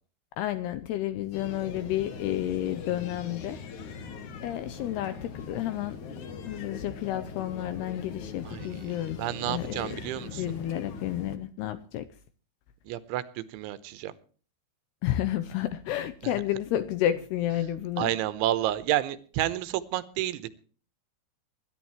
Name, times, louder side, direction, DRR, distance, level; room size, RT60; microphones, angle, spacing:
voice 1, 0.4-3.6 4.4-6.0 6.5-9.2 9.5-9.8 10.4-12.1 15.0-18.1, left 12 dB, 80° left, 12 dB, 2.4 m, -31 dB
sound 1, 1.3-11.4, left 5 dB, 60° left, 2.1 m, -41 dB
voice 2, 8.4-10.6 12.9-14.1 18.0-20.5, right 13 dB, 85° right, 14 dB, 3.3 m, -30 dB
25.0 x 11.5 x 3.1 m, 0.41 s
omnidirectional pair, 5.5 m